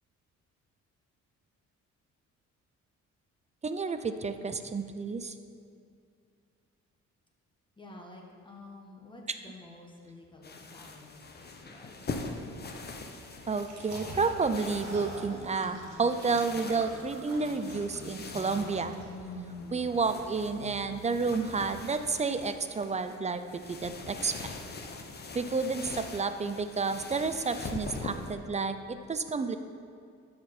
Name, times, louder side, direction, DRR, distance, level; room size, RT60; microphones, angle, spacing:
voice 1, 3.6-5.3 13.5-18.9 19.7-23.4 23.7-24.5 25.3-29.6, right 4 dB, 25° right, 9 dB, 0.5 m, -30 dB
voice 2, 7.8-12.4, left 2 dB, 15° left, -1 dB, 1.5 m, -50 dB
sound 1, 10.4-28.4, left 3 dB, 35° left, 0.8 m, -43 dB
sound 2, 13.6-19.3, right 2 dB, 55° right, 2.1 m, -46 dB
sound 3, 14.1-21.7, left 2 dB, 75° left, 2.0 m, -48 dB
12.5 x 5.1 x 4.4 m, 2.3 s
cardioid pair, 90°, 30 cm